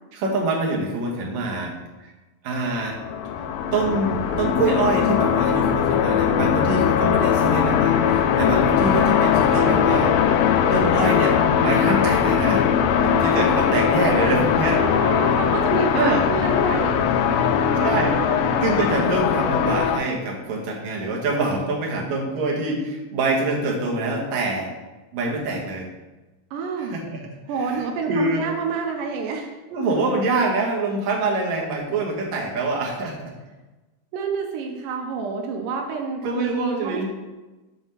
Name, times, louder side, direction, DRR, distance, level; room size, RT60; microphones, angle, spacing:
voice 1, 0.1-1.7 2.0-2.1 2.4-3.0 3.7-10.2 10.7-12.6 13.0-14.8 15.9-16.2 17.8-18.1 18.6-24.7 25.1-25.9 26.9-27.2 27.7-28.4 29.7-33.3 36.2-37.1, right 2 dB, 60° right, -2 dB, 2.1 m, -25 dB
sound 1, 2.8-20.0, left 8 dB, 90° left, 1.9 m, -20 dB
voice 2, 14.7-19.1 26.5-27.0 27.5-29.5 34.1-37.1, right 4 dB, 85° right, 2 dB, 1.8 m, -29 dB
7.7 x 4.0 x 5.5 m, 1.1 s
omnidirectional pair, 4.6 m